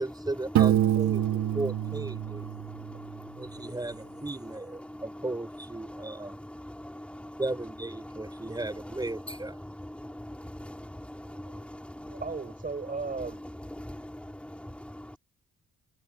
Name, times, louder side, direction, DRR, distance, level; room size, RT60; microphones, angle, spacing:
voice 1, 0.0-2.5 3.3-6.4 7.4-9.6, right 2 dB, 15° right, 5.5 m, -36 dB
Piano, 0.6-3.3, right 12 dB, 70° right, 1.7 m, -26 dB
voice 2, 0.8-1.6 2.2-4.2 4.8-5.3 5.8-7.4 8.0-12.2 13.0-15.2, left 1 dB, 5° left, 3.4 m, -43 dB
voice 3, 3.3-4.0 11.5-11.6 12.1-13.4, right 4 dB, 30° right, 6.4 m, -37 dB
cardioid pair, 90°, 30 cm